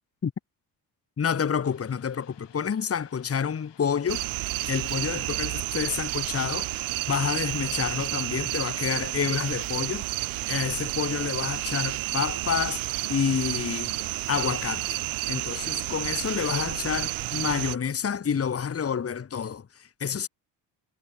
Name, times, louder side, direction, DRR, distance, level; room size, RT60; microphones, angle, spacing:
voice 1, 1.2-6.8 7.1-10.0 10.5-15.0 15.3-20.3, left 7 dB, 30° left, 1.3 m, -29 dB
sound 1, 1.6-16.3, left 10 dB, 60° left, 5.7 m, -58 dB
sound 2, 4.1-17.8, right 19 dB, 70° right, 1.5 m, -31 dB
supercardioid pair, 65°, 49 cm